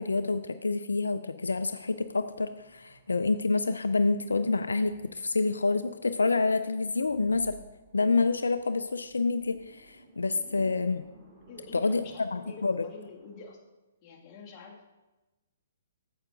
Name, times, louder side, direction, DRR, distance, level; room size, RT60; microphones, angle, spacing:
voice 1, 0.0-7.6 7.9-11.0 11.7-12.8, left 3 dB, 85° left, 11 dB, 0.3 m, -28 dB
sound 1, 1.5-13.5, right 2 dB, 30° right, 2.7 m, -57 dB
voice 2, 11.5-13.6 14.0-14.9, left 3 dB, 30° left, -1 dB, 1.6 m, -47 dB
8.7 x 7.7 x 3.8 m, 1.1 s
hypercardioid pair, 130°, 0 cm